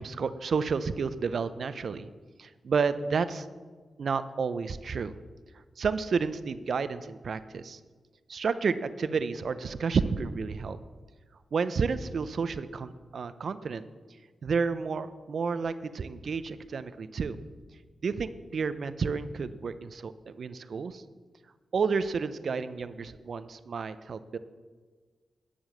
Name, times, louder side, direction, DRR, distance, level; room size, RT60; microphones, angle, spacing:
voice 1, 0.0-2.1 2.4-3.5 4.0-5.1 5.8-7.8 8.3-10.8 11.5-13.9 14.4-17.4 18.0-21.0 21.7-24.4, right 5 dB, 65° right, 13 dB, 0.5 m, -31 dB
10.0 x 7.2 x 7.6 m, 1.5 s
supercardioid pair, 50°, 0 cm